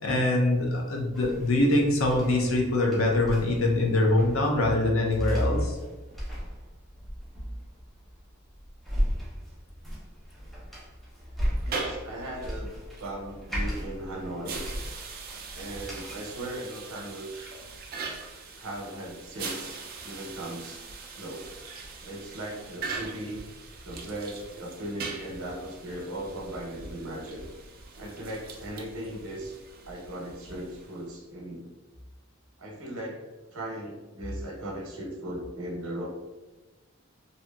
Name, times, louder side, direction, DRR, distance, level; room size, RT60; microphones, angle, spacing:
voice 1, 0.0-5.8, left 1 dB, 70° left, -1 dB, 0.6 m, -23 dB
sound 1, 1.1-16.2, equal, ahead, 0.6 m, -37 dB
sound 2, 11.5-31.1, right 4 dB, 45° right, 0.4 m, -41 dB
voice 2, 11.6-12.7 13.0-14.6 15.5-17.6 18.5-20.9 21.1-21.6 22.0-23.4 23.8-27.4 28.0-29.6 29.9-31.6 32.6-33.2 33.5-36.1, right 1 dB, 80° right, -1 dB, 0.8 m, -38 dB
2.7 x 2.7 x 2.2 m, 1.2 s
head